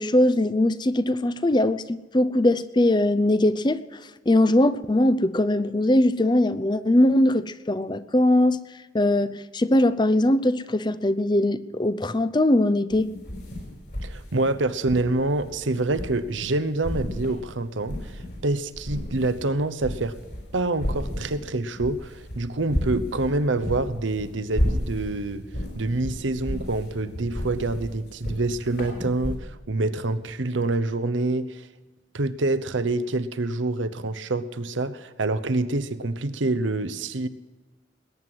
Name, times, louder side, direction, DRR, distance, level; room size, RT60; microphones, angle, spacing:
voice 1, 0.0-3.8 4.3-8.6 8.9-13.1, left 1 dB, 25° left, 15 dB, 0.6 m, -21 dB
sound 1, 12.9-16.5 16.8-18.4 18.7-29.4, equal, 60° left, 5.4 m, -32 dB
voice 2, 14.0-20.2 20.5-25.4 25.7-31.7 32.1-37.3, right 2 dB, 85° right, 12 dB, 0.9 m, -26 dB
20.5 x 9.5 x 6.1 m, 1.3 s
head